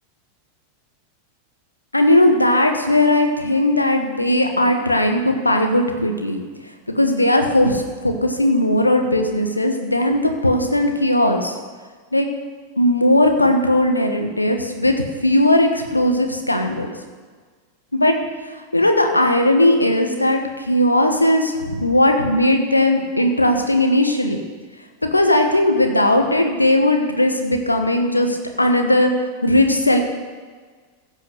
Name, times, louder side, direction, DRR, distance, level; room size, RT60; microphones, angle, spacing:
voice 1, 1.9-6.4 6.9-11.5 12.1-12.3 12.8-14.9 15.2-16.9 17.9-18.1 18.7-20.4 20.7-24.4 25.1-30.0, left 1 dB, 85° left, 5 dB, 1.2 m, -17 dB
15.5 x 5.5 x 6.7 m, 1.5 s
figure-of-eight pair, 90°, 0 cm